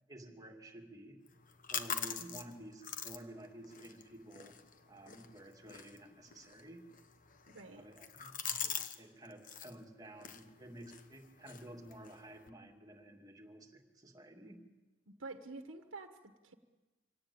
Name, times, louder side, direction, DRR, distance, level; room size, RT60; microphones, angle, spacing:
voice 1, 0.1-1.2 1.7-4.6 4.9-6.8 7.7-14.7, right 1 dB, 20° right, 3 dB, 2.4 m, -52 dB
sound 1, 1.3-9.0 9.3-9.7 10.2-12.5, left 7 dB, 45° left, 1.2 m, -44 dB
voice 2, 7.5-7.9 15.1-16.5, right 3 dB, 85° right, 6 dB, 1.4 m, -48 dB
25.0 x 17.5 x 8.6 m, 1.2 s
head